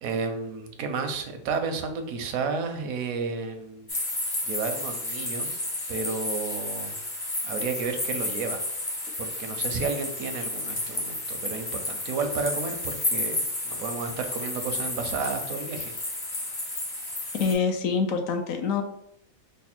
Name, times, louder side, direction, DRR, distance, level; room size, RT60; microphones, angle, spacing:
voice 1, 0.0-3.9 4.5-5.5 5.9-7.0 7.4-8.6 9.2-15.9, right 5 dB, 85° right, 6 dB, 1.1 m, -32 dB
sound 1, 3.9-17.5, left 2 dB, 30° left, 0.5 m, -32 dB
voice 2, 17.4-18.8, left 5 dB, 75° left, 5 dB, 1.0 m, -25 dB
3.3 x 2.2 x 4.2 m, 0.72 s
omnidirectional pair, 1.4 m